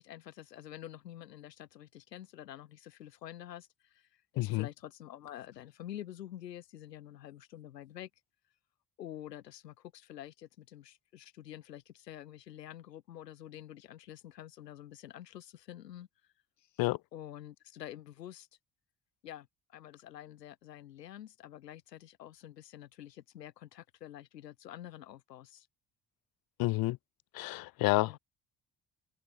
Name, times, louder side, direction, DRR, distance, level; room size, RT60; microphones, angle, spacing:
voice 1, 0.0-8.1 9.0-16.1 16.6-16.7 17.1-18.5 19.2-25.7 28.1-28.2, left 12 dB, 85° left, 0.9 m, -48 dB
voice 2, 4.4-4.7 16.8-17.0 26.6-27.0 27.3-28.1, left 20 dB, 50° left, 0.5 m, -29 dB
figure-of-eight pair, 50°, 48 cm